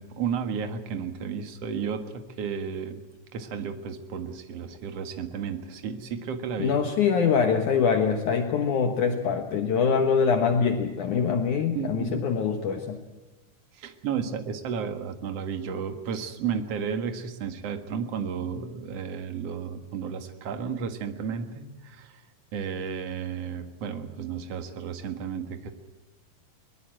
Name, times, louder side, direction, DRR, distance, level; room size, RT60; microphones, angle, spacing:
voice 1, 0.0-3.0 3.3-6.8 11.7-12.4 13.7-22.2 22.5-25.7, right 6 dB, 50° right, 7 dB, 2.3 m, -33 dB
voice 2, 6.6-13.0, left 6 dB, 65° left, 6 dB, 2.4 m, -24 dB
22.5 x 21.5 x 7.7 m, 1.2 s
omnidirectional pair, 4.4 m